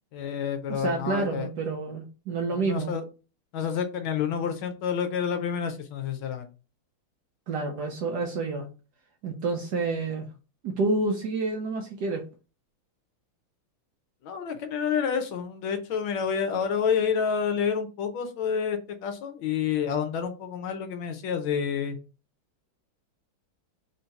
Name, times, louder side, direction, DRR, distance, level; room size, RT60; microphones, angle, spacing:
voice 1, 0.1-1.5 2.5-3.0 3.5-6.5 14.2-22.0, left 7 dB, 75° left, 7 dB, 1.4 m, -29 dB
voice 2, 0.7-3.0 7.5-8.7 9.2-10.3 10.6-12.2, right 3 dB, 70° right, 2 dB, 1.0 m, -29 dB
3.7 x 2.7 x 4.5 m, 0.33 s
omnidirectional pair, 2.4 m